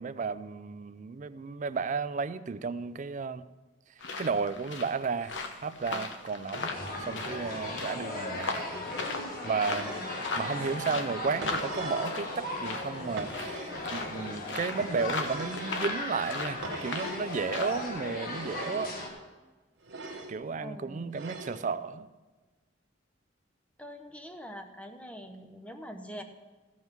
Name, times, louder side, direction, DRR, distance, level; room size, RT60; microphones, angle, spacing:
voice 1, 0.0-3.5 4.2-6.8 7.1-8.6 9.4-13.6 13.9-18.9 20.3-22.1, right 5 dB, 40° right, 14 dB, 0.4 m, -33 dB
sound 1, 4.0-17.9, left 3 dB, 75° left, 1.0 m, -39 dB
sound 2, 6.5-19.1, left 1 dB, 50° left, 1.7 m, -37 dB
sound 3, 9.6-10.3 11.2-12.2 13.2-13.9 15.1-15.8 16.6-17.3 18.3-19.0 19.8-20.4 21.1-21.7, right 2 dB, 75° right, 1.2 m, -42 dB
voice 2, 9.8-10.2 20.6-21.0 23.8-26.2, equal, 5° left, 6 dB, 0.8 m, -44 dB
15.0 x 5.5 x 6.0 m, 1.3 s
head